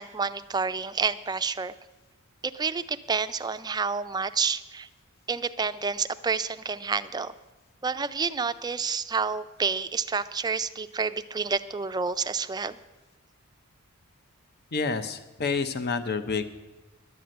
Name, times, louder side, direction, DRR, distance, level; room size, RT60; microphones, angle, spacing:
voice 1, 0.0-1.7 2.4-4.9 5.3-7.3 7.8-12.8, right 5 dB, 20° right, 11 dB, 0.4 m, -29 dB
voice 2, 14.7-16.4, left 4 dB, 50° left, 10 dB, 0.8 m, -28 dB
11.0 x 9.2 x 7.7 m, 1.1 s
head